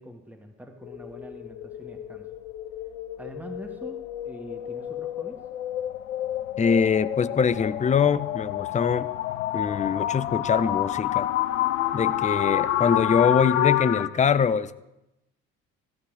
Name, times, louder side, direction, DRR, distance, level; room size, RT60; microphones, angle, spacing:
voice 1, 0.0-2.3 3.2-5.4, equal, 5° right, 2.0 m, -43 dB
sound 1, 0.8-14.1, left 12 dB, 80° left, 0.6 m, -28 dB
voice 2, 6.6-9.1 9.5-11.3 11.9-14.8, left 6 dB, 20° left, 0.6 m, -23 dB
14.5 x 9.3 x 4.9 m
figure-of-eight pair, 50°, 40 cm